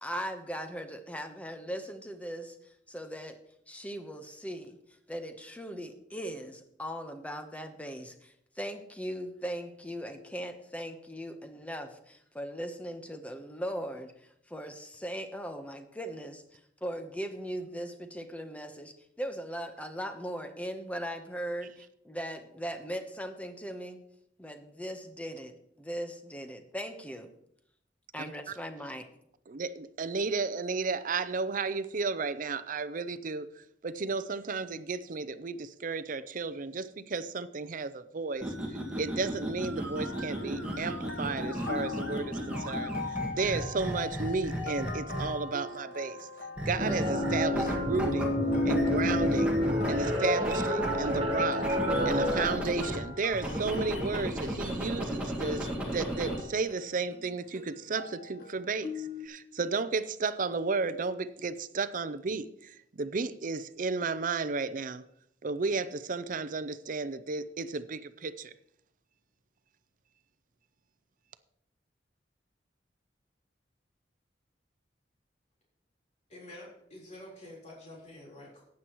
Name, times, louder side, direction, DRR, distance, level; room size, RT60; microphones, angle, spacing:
voice 1, 0.0-2.6 2.9-3.4 3.7-4.8 5.1-14.1 14.5-24.0 24.4-27.3 28.1-29.1, equal, 10° left, 7 dB, 1.0 m, -39 dB
voice 2, 29.5-38.5 39.0-46.3 46.7-48.4 48.6-49.6 49.9-51.6 52.0-65.0 65.4-68.5, right 4 dB, 50° right, 14 dB, 0.5 m, -33 dB
sound 1, 38.3-45.5 46.6-48.2 48.5-53.0 53.3-56.4, equal, 5° right, 1.9 m, -35 dB
sound 2, 40.0-59.3, left 3 dB, 60° left, 1.1 m, -42 dB
sound 3, 46.8-52.5, left 1 dB, 30° right, 1.4 m, -28 dB
voice 3, 76.3-78.6, left 1 dB, 40° left, -3 dB, 4.0 m, -48 dB
14.5 x 9.6 x 3.0 m, 0.72 s
head